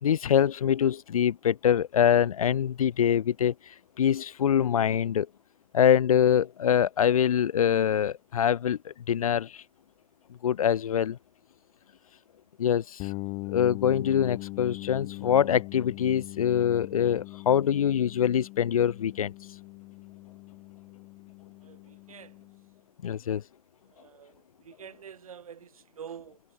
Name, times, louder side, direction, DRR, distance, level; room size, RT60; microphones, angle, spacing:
voice 1, 0.0-3.5 4.0-5.3 5.7-9.6 10.4-11.2 12.6-13.1 13.5-19.3 23.0-23.4, left 9 dB, 70° left, 0.6 m, -24 dB
sound 1, 13.0-22.7, left 25 dB, 30° left, 0.8 m, -41 dB
voice 2, 21.6-22.5 23.9-26.4, right 8 dB, 70° right, 3.3 m, -47 dB
figure-of-eight pair, 110°, 19 cm